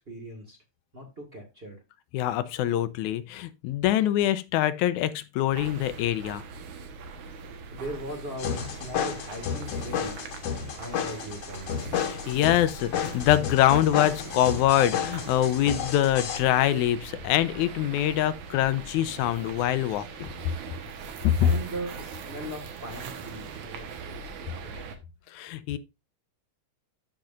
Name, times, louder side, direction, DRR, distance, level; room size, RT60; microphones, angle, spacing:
voice 1, 0.1-0.6 0.9-1.8 7.7-10.1 10.6-11.7 21.4-24.9, right 1 dB, 25° right, 1.5 m, -39 dB
voice 2, 2.1-6.4 12.0-20.3 21.2-21.5 25.3-25.8, left 12 dB, 85° left, 2.0 m, -24 dB
sound 1, 5.5-25.0, right 4 dB, 75° right, 2.6 m, -41 dB
sound 2, 8.4-16.4, left 8 dB, 60° left, 2.0 m, -32 dB
13.0 x 5.3 x 2.5 m
omnidirectional pair, 3.4 m